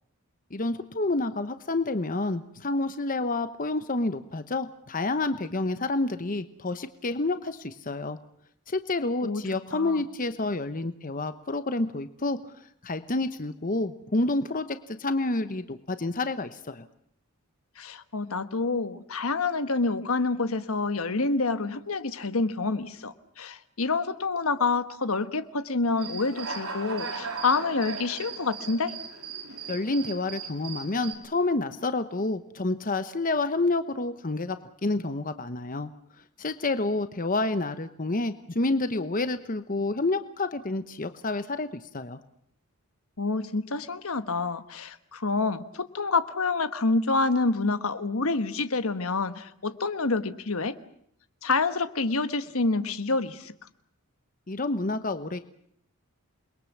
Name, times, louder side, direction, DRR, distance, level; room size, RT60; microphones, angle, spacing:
voice 1, 0.5-8.2 8.7-12.4 12.8-16.9 29.7-35.9 36.4-41.7 41.9-42.2 54.5-55.4, left 2 dB, 40° left, 11 dB, 1.0 m, -29 dB
voice 2, 9.7-10.0 17.8-28.9 43.2-50.7 51.4-53.5, left 3 dB, 70° left, 11 dB, 1.3 m, -27 dB
Human voice / Cricket, 26.0-31.1, right 5 dB, 80° right, 4.2 m, -37 dB
28.5 x 22.0 x 7.3 m, 0.67 s
head